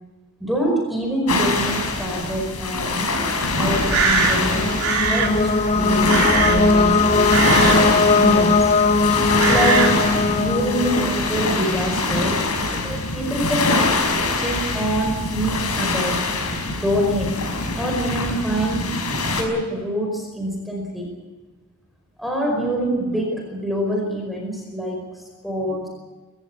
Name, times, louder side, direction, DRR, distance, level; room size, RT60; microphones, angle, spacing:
voice 1, 0.4-3.1 3.5-8.8 9.5-10.0 10.3-13.7 14.4-16.2 16.6-17.4 17.8-18.9 19.4-21.1 22.2-25.9, right 1 dB, ahead, 0 dB, 5.0 m, -25 dB
sound 1, 1.3-19.4, left 3 dB, 80° left, 5.6 m, -24 dB
Crow, 3.4-10.2, right 4 dB, 75° right, 3.8 m, -24 dB
sound 2, 4.1-11.9, left 3 dB, 30° left, 1.0 m, -20 dB
25.5 x 15.0 x 8.6 m, 1.3 s
head